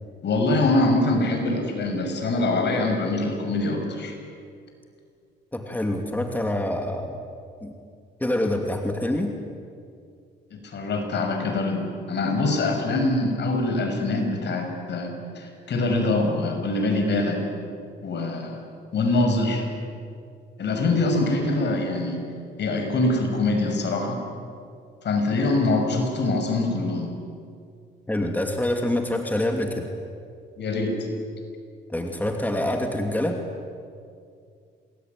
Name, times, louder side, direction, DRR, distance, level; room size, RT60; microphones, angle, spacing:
voice 1, 0.2-4.1 10.5-17.4 18.0-18.6 18.9-19.7 20.6-22.2 22.6-24.2 25.0-27.1 30.6-31.0, left 2 dB, 60° left, 4 dB, 6.5 m, -24 dB
voice 2, 5.5-7.2 7.6-7.7 8.2-9.3 28.1-29.9 31.9-33.4, left 1 dB, 10° left, 3 dB, 2.7 m, -26 dB
27.5 x 21.0 x 9.6 m, 2.3 s
cardioid pair, 90°, 20 cm